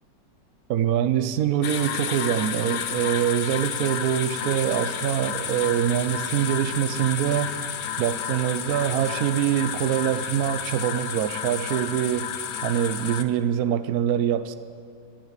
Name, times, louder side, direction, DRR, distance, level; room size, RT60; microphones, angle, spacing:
voice 1, 0.7-7.5 8.0-12.3 12.6-14.5, right 10 dB, 70° right, 1.0 m, -24 dB
sound 1, 1.6-13.2, left 8 dB, 65° left, 0.7 m, -31 dB
12.0 x 9.1 x 9.8 m
omnidirectional pair, 1.9 m